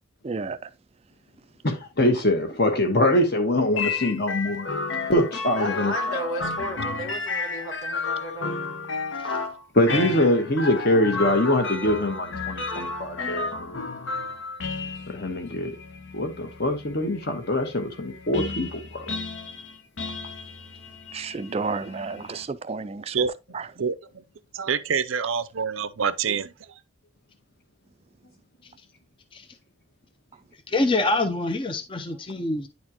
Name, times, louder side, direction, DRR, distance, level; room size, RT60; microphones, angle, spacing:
voice 1, 0.2-0.6 21.1-23.3 23.5-23.7, right 4 dB, 30° right, 0.3 m, -31 dB
voice 2, 1.6-4.7 5.1-5.9 9.7-13.9 15.1-15.8 16.1-19.1, left 1 dB, 50° left, 1.3 m, -23 dB
sound 1, 3.8-22.4, left 3 dB, 70° left, 0.9 m, -32 dB
voice 3, 5.6-8.5 28.2-28.3 28.6-28.7 32.1-32.5, equal, 85° left, 2.5 m, -34 dB
voice 4, 23.8-24.2 24.5-26.5, right 6 dB, 80° right, 0.6 m, -26 dB
voice 5, 30.7-32.7, left 2 dB, 25° left, 0.5 m, -25 dB
9.6 x 4.3 x 2.9 m
head